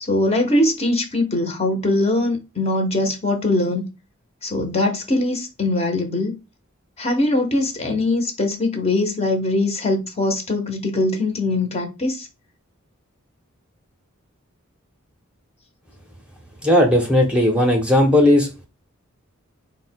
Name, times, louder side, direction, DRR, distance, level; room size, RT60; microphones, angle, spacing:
voice 1, 0.0-3.9 4.4-6.4 7.0-12.3, left 2 dB, 30° left, 0.8 m, -21 dB
voice 2, 16.6-18.5, left 1 dB, 5° right, 0.7 m, -16 dB
4.3 x 2.2 x 4.3 m
head